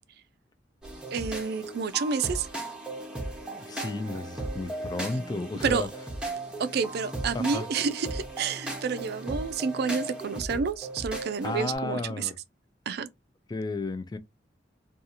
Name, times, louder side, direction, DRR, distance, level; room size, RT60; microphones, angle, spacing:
sound 1, 0.8-11.8, right 2 dB, 5° right, 0.7 m, -37 dB
voice 1, 1.1-2.5 5.6-5.9 6.6-12.3 12.9-13.1, right 5 dB, 60° right, 0.4 m, -29 dB
voice 2, 3.6-5.9 7.3-7.7 11.4-12.3 13.5-14.2, left 2 dB, 25° left, 0.3 m, -33 dB
2.8 x 2.3 x 2.5 m
head